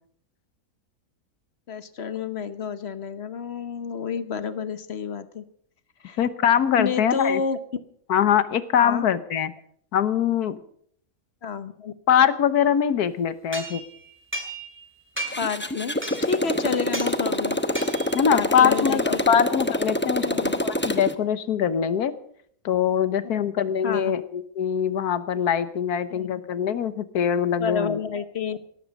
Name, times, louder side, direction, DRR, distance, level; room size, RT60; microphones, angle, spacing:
voice 1, 1.7-5.4 6.0-6.2 6.8-7.8 8.8-9.1 11.4-11.9 15.4-17.6 18.3-19.4 20.2-20.5 23.3-23.4 23.8-24.2 26.1-26.3 27.6-28.7, left 6 dB, 45° left, 12 dB, 1.2 m, -30 dB
voice 2, 6.2-7.4 8.1-9.5 9.9-10.6 12.1-13.8 18.1-20.3 20.6-22.1 22.6-28.0, left 8 dB, 80° left, 14 dB, 1.5 m, -23 dB
sound 1, 13.5-14.8 15.2-15.6 16.0-16.4 16.9-17.2 17.7-18.3, right 1 dB, 5° right, 2.4 m, -34 dB
Motorcycle, 15.3-21.1, left 1 dB, 10° left, 0.6 m, -26 dB
18.0 x 13.5 x 5.3 m, 0.64 s
omnidirectional pair, 1.6 m